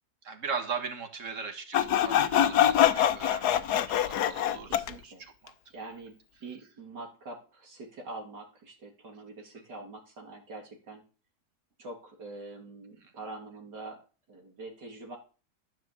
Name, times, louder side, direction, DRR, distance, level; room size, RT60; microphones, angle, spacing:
voice 1, 0.2-5.5, right 5 dB, 50° right, 7 dB, 1.9 m, -39 dB
Sawing, 1.7-4.9, left 11 dB, 70° left, 1.3 m, -24 dB
voice 2, 4.6-5.3 5.7-11.0 11.8-14.0 14.3-15.2, right 2 dB, 90° right, 1 dB, 3.1 m, -44 dB
13.0 x 6.0 x 7.4 m, 0.36 s
omnidirectional pair, 1.8 m